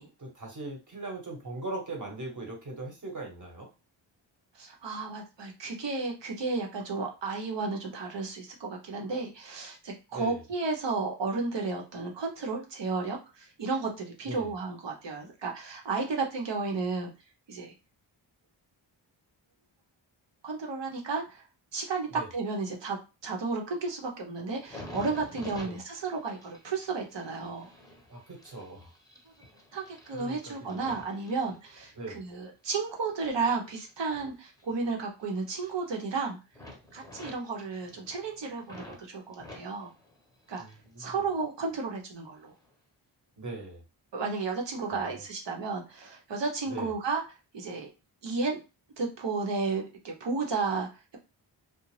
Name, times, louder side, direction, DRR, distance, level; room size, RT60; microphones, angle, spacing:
voice 1, 0.2-3.7 10.1-10.4 14.2-14.5 22.1-22.3 25.6-25.8 28.1-28.9 30.2-30.8 31.9-32.2 40.6-41.2 43.4-43.8 45.0-45.2 46.6-46.9, right 2 dB, 40° right, 1 dB, 1.3 m, -40 dB
voice 2, 4.5-17.1 17.5-17.7 20.4-21.4 21.7-23.0 23.2-27.7 29.7-36.4 36.9-39.9 40.5-40.6 41.0-42.5 44.1-47.2 47.5-47.9 48.2-48.6 49.0-51.2, right 4 dB, 60° right, 1 dB, 0.9 m, -33 dB
sound 1, 24.5-32.2 32.6-35.2 35.5-36.2 36.5-39.0 39.3-40.9 41.2-41.9 42.5-42.7, left 1 dB, 10° left, 1.0 m, -49 dB
2.4 x 2.1 x 3.2 m, 0.29 s
cardioid pair, 50°, 47 cm